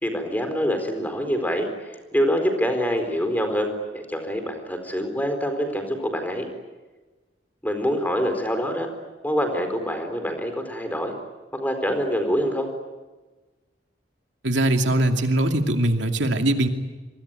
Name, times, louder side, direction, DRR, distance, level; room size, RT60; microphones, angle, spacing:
voice 1, 0.0-1.7 2.1-6.5 7.6-8.9 9.2-11.1 11.5-12.7, equal, 10° left, 6 dB, 4.3 m, -25 dB
voice 2, 14.4-16.7, right 1 dB, 85° right, 5 dB, 2.5 m, -21 dB
26.0 x 24.0 x 9.1 m, 1.2 s
head